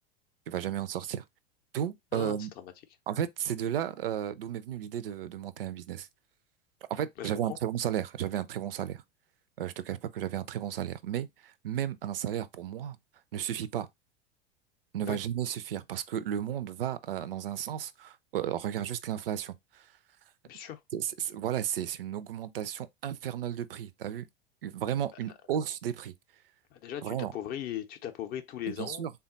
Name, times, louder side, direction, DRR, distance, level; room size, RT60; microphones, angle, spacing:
voice 1, 0.5-1.2 1.7-2.5 3.1-6.1 6.9-9.0 9.6-13.0 13.3-13.9 14.9-19.8 20.9-24.3 24.6-26.1 27.0-27.3 28.7-29.1, right 10 dB, 65° right, 0.5 m, -33 dB
voice 2, 2.1-2.7 7.2-7.6 15.1-15.2 20.4-20.8 26.7-29.1, left 11 dB, 30° left, 0.5 m, -38 dB
3.5 x 2.3 x 3.8 m
figure-of-eight pair, 85°, 31 cm